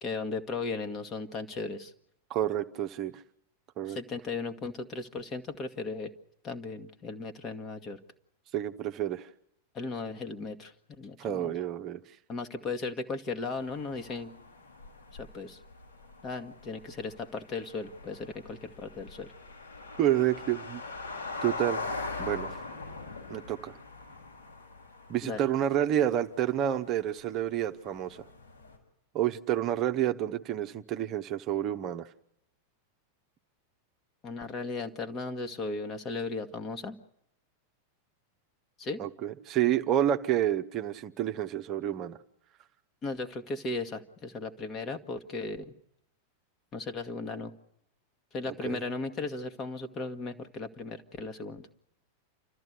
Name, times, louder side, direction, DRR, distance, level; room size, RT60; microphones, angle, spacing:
voice 1, 0.0-1.9 3.9-6.1 6.4-8.0 9.7-11.5 12.3-14.4 15.1-15.6 16.2-19.3 25.2-25.4 34.2-37.0 38.8-39.0 43.0-45.7 46.7-47.5 48.3-51.7, left 3 dB, 30° left, 6 dB, 1.7 m, -36 dB
voice 2, 2.3-3.2 3.8-4.0 8.5-9.3 11.2-12.0 20.0-20.8 21.4-21.8 22.2-22.5 23.3-23.8 25.1-28.3 29.1-32.1 39.0-42.2 48.6-48.8, right 11 dB, 35° right, 6 dB, 0.9 m, -29 dB
sound 1, 13.5-28.8, left 3 dB, 80° left, 6.6 m, -42 dB
29.5 x 13.5 x 8.0 m, 0.78 s
figure-of-eight pair, 90°, 0 cm